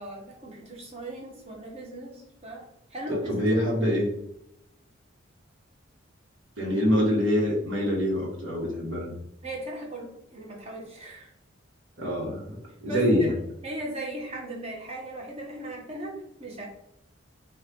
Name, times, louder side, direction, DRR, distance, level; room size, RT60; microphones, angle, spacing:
voice 1, 0.0-2.6 2.9-3.8 9.4-11.3 12.9-13.3 13.6-16.7, right 1 dB, 30° right, -1 dB, 1.1 m, -38 dB
voice 2, 3.1-4.1 6.6-9.1 12.0-12.6 12.8-13.3, equal, 65° right, -2 dB, 1.5 m, -25 dB
5.7 x 2.5 x 3.0 m, 0.77 s
head